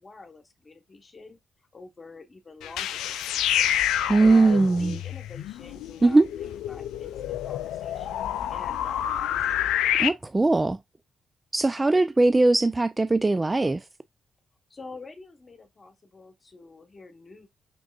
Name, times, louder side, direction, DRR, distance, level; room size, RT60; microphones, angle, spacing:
voice 1, 0.0-1.4 1.7-8.2 8.5-9.5 14.7-17.5, left 3 dB, 40° left, 1.2 m, -47 dB
sound 1, 2.6-10.1, left 11 dB, 75° left, 0.3 m, -28 dB
voice 2, 4.1-5.0 6.0-6.3 10.0-10.8 11.5-13.8, right 2 dB, 25° right, 0.4 m, -20 dB
6.0 x 3.5 x 2.4 m
hypercardioid pair, 40°, 0 cm